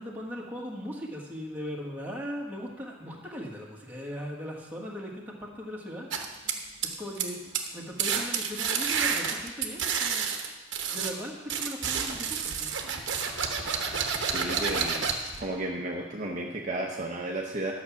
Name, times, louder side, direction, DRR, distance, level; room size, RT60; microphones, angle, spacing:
voice 1, 0.0-6.1 7.0-7.4 7.7-10.3 10.9-12.8, equal, 10° right, -3 dB, 1.6 m, -38 dB
sound 1, 6.1-7.3 7.5-7.7 8.0-11.1 11.5-15.4, right 6 dB, 60° right, 1.1 m, -30 dB
voice 2, 14.3-15.1 15.4-17.7, right 1 dB, 35° right, -1 dB, 0.8 m, -33 dB
11.5 x 6.0 x 7.2 m, 1.2 s
head